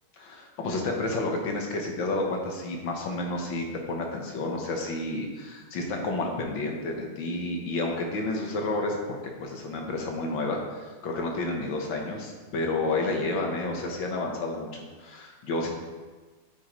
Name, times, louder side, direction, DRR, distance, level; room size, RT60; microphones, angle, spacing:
voice 1, 0.2-15.7, left 2 dB, 75° left, 1 dB, 1.9 m, -30 dB
8.8 x 8.8 x 3.2 m, 1.4 s
omnidirectional pair, 2.2 m